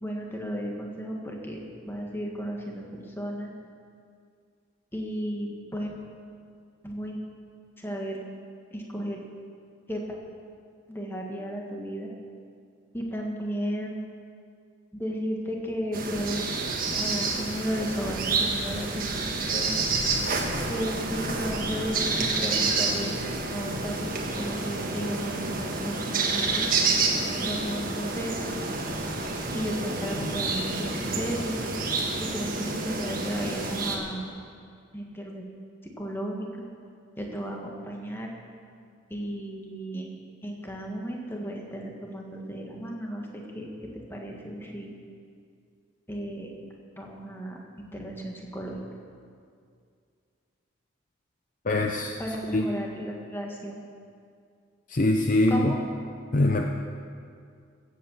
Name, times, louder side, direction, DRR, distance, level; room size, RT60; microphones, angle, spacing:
voice 1, 0.0-3.5 4.9-6.0 6.8-7.2 7.8-8.2 8.7-9.2 9.9-10.0 10.9-12.1 12.9-14.0 15.0-16.5 17.0-19.7 20.7-23.2 23.5-26.7 27.4-28.5 29.5-31.6 32.2-34.2 34.9-35.4 36.0-36.5 37.2-38.3 39.1-40.1 40.4-44.9 46.1-46.5 47.0-48.8 51.8-51.9 52.2-53.7 55.5-55.8, equal, 10° left, 0 dB, 1.6 m, -34 dB
sound 1, 15.9-34.0, right 3 dB, 45° right, 1.5 m, -29 dB
voice 2, 51.6-52.7 54.9-55.8 56.3-56.7, left 2 dB, 40° left, 3 dB, 0.6 m, -24 dB
16.0 x 8.2 x 7.3 m, 2.3 s
head